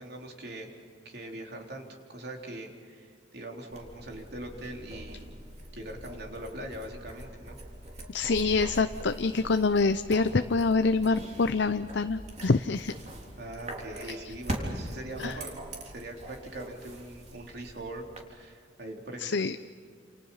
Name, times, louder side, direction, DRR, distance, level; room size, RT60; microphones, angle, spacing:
voice 1, 0.0-5.3 5.7-7.6 13.4-15.6 15.8-18.0 18.3-19.6, right 1 dB, 55° right, 1 dB, 3.9 m, -42 dB
sound 1, 3.7-18.2, right 1 dB, 35° right, 3.7 m, -42 dB
voice 2, 8.1-12.9 14.3-14.4 15.2-15.4 19.2-19.6, left 4 dB, 65° left, 9 dB, 0.6 m, -26 dB
29.0 x 28.5 x 5.7 m, 2.2 s
head